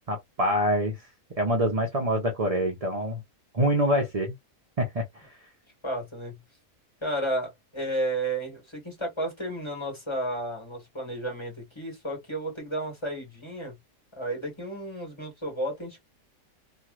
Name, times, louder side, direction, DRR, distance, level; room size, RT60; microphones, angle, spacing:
voice 1, 0.1-1.1 1.4-3.2 3.5-4.3 4.8-5.3, equal, 40° right, 0.6 m, -25 dB
voice 2, 5.8-6.4 7.0-13.7 14.2-16.0, right 1 dB, 20° left, 1.6 m, -32 dB
3.0 x 2.6 x 2.4 m
omnidirectional pair, 1.5 m